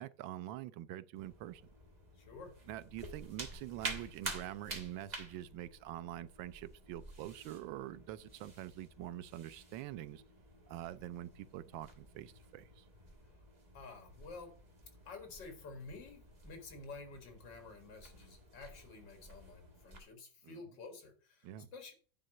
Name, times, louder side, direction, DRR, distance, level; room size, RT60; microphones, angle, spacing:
voice 1, 0.0-1.6 2.7-10.2 10.7-12.8 20.4-20.6 21.4-21.7, right 13 dB, 90° right, 1.3 m, -45 dB
sound 1, 1.1-20.0, right 2 dB, 25° right, 1.4 m, -50 dB
voice 2, 2.2-2.6 13.7-14.6 15.1-21.9, left 3 dB, 75° left, 2.3 m, -51 dB
9.7 x 3.9 x 6.3 m
omnidirectional pair, 2.0 m